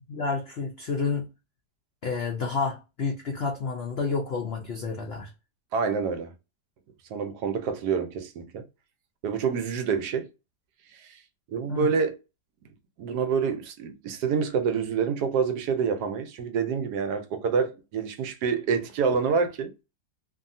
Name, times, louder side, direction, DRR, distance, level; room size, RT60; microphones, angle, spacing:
voice 1, 0.1-1.3 2.0-5.3 11.7-11.9, left 4 dB, 80° left, 0.5 m, -30 dB
voice 2, 5.7-6.3 7.1-8.6 9.2-10.3 10.9-11.2 11.5-12.2 13.0-19.7, right 6 dB, 75° right, 1.2 m, -27 dB
2.7 x 2.7 x 2.6 m
omnidirectional pair, 1.8 m